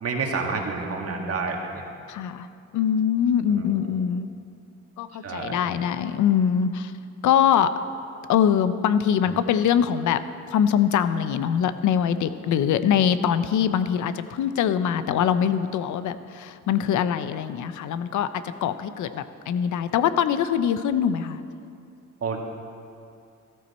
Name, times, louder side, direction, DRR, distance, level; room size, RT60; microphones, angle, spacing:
voice 1, 0.0-1.9 5.2-5.8 22.2-22.4, right 4 dB, 50° right, 2 dB, 1.9 m, -29 dB
voice 2, 2.1-2.5 2.7-4.3 5.0-6.9 7.2-7.7 8.3-10.2 10.5-21.4, left 8 dB, 75° left, 12 dB, 0.7 m, -23 dB
14.0 x 13.0 x 4.3 m, 2.5 s
cardioid pair, 90°, 30 cm